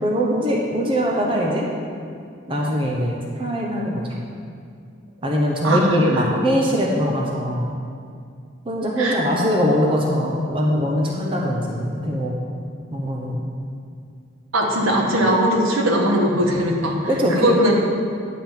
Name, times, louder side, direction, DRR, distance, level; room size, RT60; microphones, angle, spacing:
voice 1, 0.0-1.7 2.5-4.2 5.2-7.7 8.6-12.4 12.9-13.4 17.1-17.7, equal, 25° right, -2 dB, 0.9 m, -22 dB
voice 2, 5.6-6.3 9.0-9.2 14.5-17.0 17.3-17.7, right 1 dB, 85° right, -1 dB, 1.4 m, -20 dB
10.5 x 3.8 x 7.3 m, 2.3 s
head